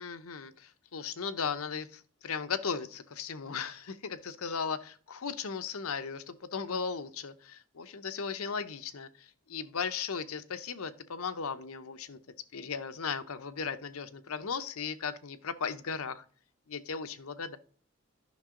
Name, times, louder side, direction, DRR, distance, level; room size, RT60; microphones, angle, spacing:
voice 1, 0.0-12.2 12.5-16.2 16.7-17.6, left 5 dB, 85° left, 0.8 m, -37 dB
10.5 x 6.1 x 3.7 m
head